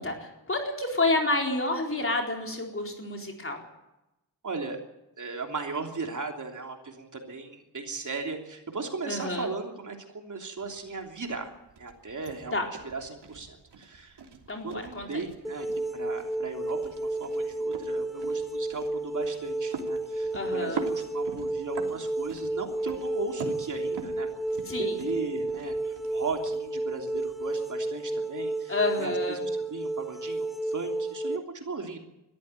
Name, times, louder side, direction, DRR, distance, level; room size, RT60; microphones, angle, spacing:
voice 1, 0.0-3.6 9.0-9.5 12.5-12.6 14.5-15.2 20.3-20.8 24.7-25.0 28.7-29.4, left 2 dB, 30° left, 2 dB, 4.2 m, -29 dB
voice 2, 4.4-4.8 5.2-11.5 11.8-12.5 12.8-14.2 14.6-15.7 15.9-24.3 24.8-32.0, right 4 dB, 45° right, 3 dB, 3.2 m, -37 dB
sound 1, 10.6-27.6, right 4 dB, 85° right, 3.1 m, -45 dB
sound 2, 15.4-31.4, right 2 dB, ahead, 1.5 m, -32 dB
22.0 x 14.0 x 9.1 m, 0.92 s
wide cardioid pair, 175°, 40 cm